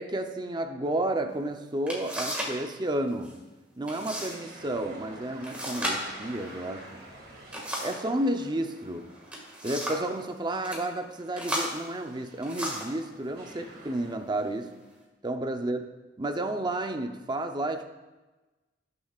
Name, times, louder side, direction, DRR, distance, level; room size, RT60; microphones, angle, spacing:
voice 1, 0.0-3.4 3.8-7.0 7.8-9.1 9.6-14.7 15.2-15.8 16.2-17.9, right 1 dB, 25° right, 6 dB, 0.7 m, -31 dB
sound 1, 1.4-1.5 1.9-2.6 2.9-3.4 3.9-4.4 4.7-4.8 5.4-8.1 9.1-10.1 10.5-10.8 11.3-13.0 13.8-13.9 14.5-15.0, equal, 5° right, 1.9 m, -35 dB
sound 2, 4.1-10.7 11.1-11.2 12.0-14.2, right 1 dB, 60° right, 2.1 m, -49 dB
17.5 x 6.9 x 2.4 m, 1.2 s
head